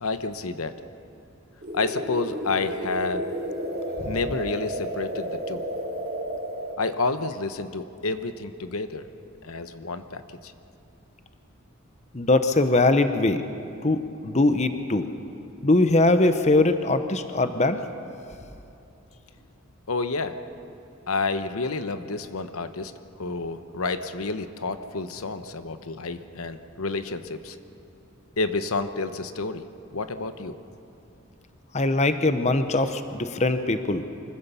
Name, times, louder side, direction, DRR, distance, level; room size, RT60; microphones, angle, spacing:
voice 1, 0.0-0.7 1.7-3.3 4.1-5.6 6.8-9.1 9.4-10.5 19.9-20.4 21.1-22.9 23.2-27.6 28.4-29.6 29.9-30.6, left 3 dB, 85° left, 10 dB, 0.9 m, -29 dB
sound 1, 1.6-6.8, equal, 45° right, 3.5 m, -32 dB
voice 2, 12.1-13.4 13.8-15.1 15.6-17.8 31.7-34.0, left 2 dB, 30° left, 9 dB, 0.8 m, -21 dB
24.5 x 15.5 x 7.0 m, 2.8 s
head